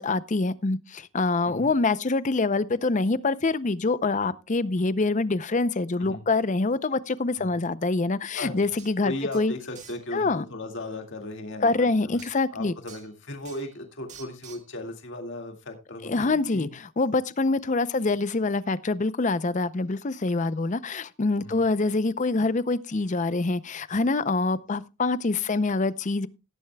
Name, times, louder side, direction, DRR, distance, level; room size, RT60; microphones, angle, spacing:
voice 1, 0.0-9.5 10.1-10.4 11.6-12.7 16.0-26.3, left 3 dB, 35° left, 0.5 m, -25 dB
voice 2, 8.3-8.7 9.0-12.2 12.5-16.7 21.4-21.6, left 1 dB, 55° left, 2.1 m, -37 dB
sound 1, 8.5-8.6 8.8-8.9 9.3-10.0 12.2-12.3 12.9-13.1 13.4-13.8 14.1-14.7, right 7 dB, 35° right, 1.8 m, -48 dB
17.0 x 10.5 x 2.3 m
head